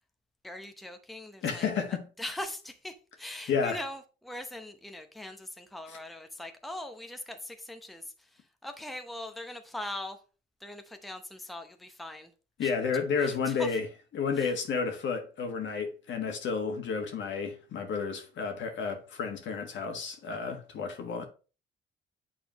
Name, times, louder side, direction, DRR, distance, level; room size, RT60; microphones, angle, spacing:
voice 1, 0.4-1.7 2.2-8.0 8.3-10.2 10.6-12.3 12.6-12.7 13.2-13.7 14.4-14.5, left 1 dB, ahead, 0.7 m, -41 dB
voice 2, 1.4-2.1 3.5-3.8 5.9-6.0 12.6-13.9 14.1-21.2, left 5 dB, 70° left, 1.5 m, -31 dB
7.7 x 4.2 x 3.0 m
cardioid pair, 90°, 20 cm